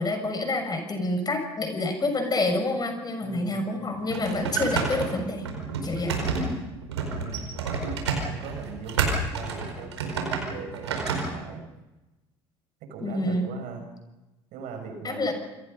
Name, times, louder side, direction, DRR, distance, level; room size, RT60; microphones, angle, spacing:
voice 1, 0.0-5.4 5.8-6.2 13.0-13.5 15.0-15.3, left 2 dB, 30° left, 6 dB, 6.3 m, -27 dB
voice 2, 3.2-3.7 7.0-11.6 12.8-13.8 14.5-15.3, right 5 dB, 65° right, 5 dB, 6.5 m, -40 dB
sound 1, 3.9-11.3, right 4 dB, 85° right, 4.9 m, -29 dB
27.0 x 24.0 x 5.5 m, 1.0 s
hypercardioid pair, 65°, 14 cm